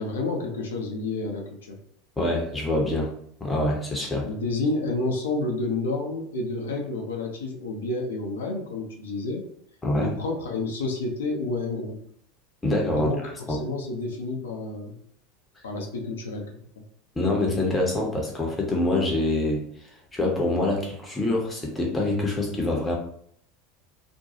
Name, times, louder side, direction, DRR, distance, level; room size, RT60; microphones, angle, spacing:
voice 1, 0.0-1.8 4.2-9.5 9.9-12.0 12.9-15.0 15.6-16.8, left 2 dB, 65° left, 1 dB, 0.6 m, -30 dB
voice 2, 2.2-3.1 3.4-4.3 9.8-10.1 12.6-13.1 13.5-13.6 17.2-23.0, left 2 dB, 15° left, -1 dB, 0.7 m, -25 dB
2.5 x 2.2 x 2.8 m, 0.65 s
figure-of-eight pair, 80°, 0 cm